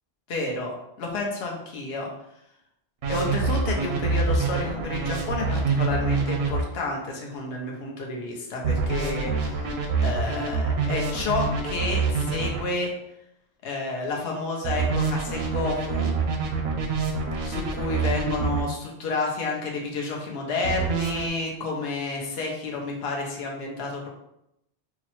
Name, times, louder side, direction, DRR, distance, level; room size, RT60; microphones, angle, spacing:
voice 1, 0.3-2.1 3.1-9.7 10.0-12.9 13.6-16.1 17.4-24.1, left 3 dB, 75° left, -1 dB, 0.9 m, -30 dB
sound 1, 3.0-6.6 8.6-12.6 14.6-18.6 20.6-21.3, right 5 dB, 80° right, 0.9 m, -26 dB
4.7 x 2.0 x 3.0 m, 0.82 s
omnidirectional pair, 1.1 m